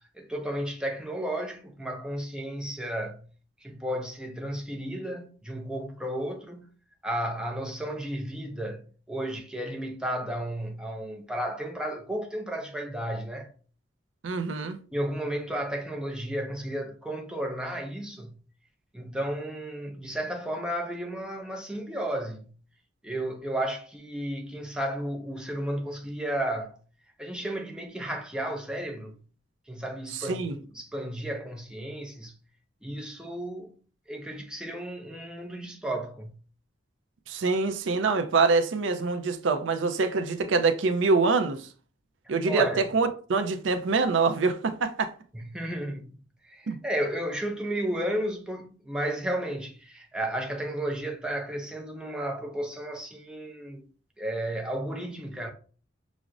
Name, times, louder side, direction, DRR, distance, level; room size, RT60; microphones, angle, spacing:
voice 1, 0.2-3.2 3.6-6.7 7.0-13.5 14.9-18.4 18.9-22.5 23.0-26.8 27.2-29.2 29.7-32.3 32.8-33.7 34.1-36.4 42.4-42.8 45.3-53.8 54.2-55.5, right 1 dB, 5° right, 0.5 m, -33 dB
voice 2, 14.2-14.8 30.1-30.6 37.3-41.6 42.3-45.1 46.7-46.8, right 4 dB, 85° right, 0.4 m, -25 dB
5.9 x 2.0 x 2.4 m
head